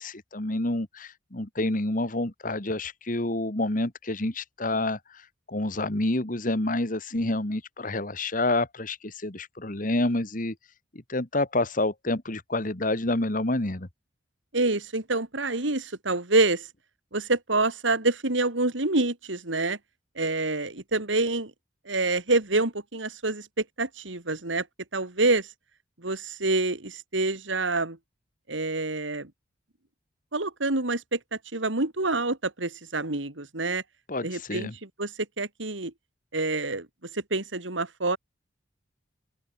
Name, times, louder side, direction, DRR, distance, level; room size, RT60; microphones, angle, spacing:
voice 1, 0.0-10.6 10.9-13.9 34.1-34.7, left 2 dB, 45° left, 2.0 m, -28 dB
voice 2, 14.5-16.7 17.1-19.8 20.2-21.5 21.8-24.7 24.9-25.5 26.0-28.0 28.5-29.3 30.3-33.8 34.2-34.7 35.0-35.9 36.3-36.9 37.1-38.2, right 2 dB, 80° right, 2.9 m, -27 dB
open air
head